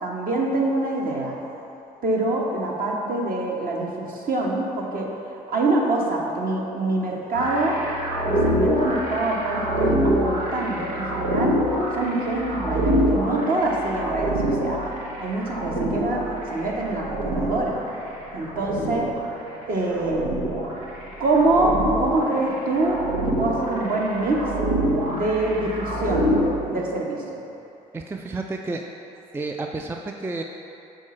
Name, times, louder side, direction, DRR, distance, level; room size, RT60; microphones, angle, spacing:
voice 1, 0.0-1.3 2.0-5.1 5.5-7.8 8.3-11.6 12.0-14.9 15.2-17.8 18.3-19.1 19.7-20.3 21.2-23.0 23.2-24.5 25.1-26.4 26.7-27.2, right 2 dB, 50° right, -2 dB, 1.2 m, -25 dB
sound 1, 7.3-26.5, equal, 90° right, 0.9 m, -25 dB
voice 2, 27.9-28.8 29.3-30.4, right 3 dB, 10° right, 3 dB, 0.3 m, -30 dB
6.3 x 3.9 x 4.3 m, 2.9 s
hypercardioid pair, 50°, 19 cm